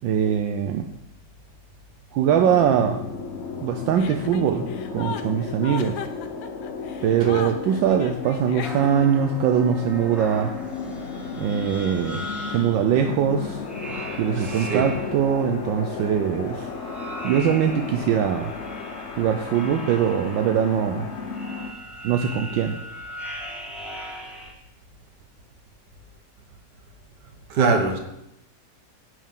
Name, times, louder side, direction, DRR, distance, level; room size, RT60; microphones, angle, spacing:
voice 1, 0.0-0.9 2.1-3.0 3.6-6.0 7.0-10.6 11.4-13.6 14.2-16.7 17.2-18.5 19.2-21.1 22.0-22.8, right 8 dB, 80° right, 5 dB, 1.4 m, -22 dB
sound 1, 2.3-21.7, left 5 dB, 50° left, 0.8 m, -34 dB
Chuckle chortle, 3.9-9.2, left 7 dB, 80° left, 1.4 m, -36 dB
sound 2, 8.6-12.9 13.6-15.3 16.4-24.5, equal, ahead, 1.4 m, -39 dB
voice 2, 14.3-14.9 27.5-28.0, right 4 dB, 65° right, 5 dB, 1.7 m, -23 dB
9.6 x 8.0 x 3.7 m, 0.84 s
omnidirectional pair, 2.0 m